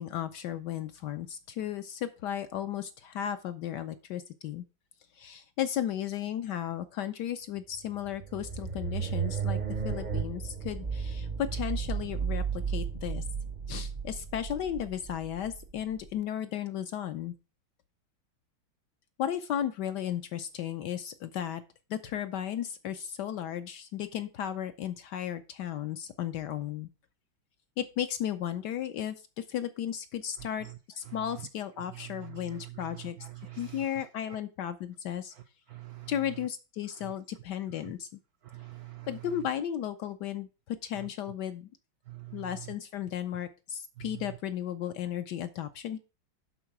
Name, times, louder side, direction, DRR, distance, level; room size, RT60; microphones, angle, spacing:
voice 1, 0.0-4.6 5.1-13.2 13.7-17.3 19.2-21.6 21.9-26.9 27.8-30.7 30.9-33.3 33.6-35.3 36.1-38.2 39.1-41.7 42.3-46.0, left 10 dB, 75° left, 1.0 m, -35 dB
sound 1, 7.7-16.1, right 6 dB, 50° right, 0.5 m, -34 dB
voice 2, 30.4-30.8 31.1-31.5 31.9-34.4 35.7-36.1 37.0-37.1 38.4-39.4 41.0-41.1 42.1-42.7 44.0-44.3, right 16 dB, 85° right, 0.8 m, -45 dB
11.0 x 3.9 x 5.8 m
omnidirectional pair, 2.2 m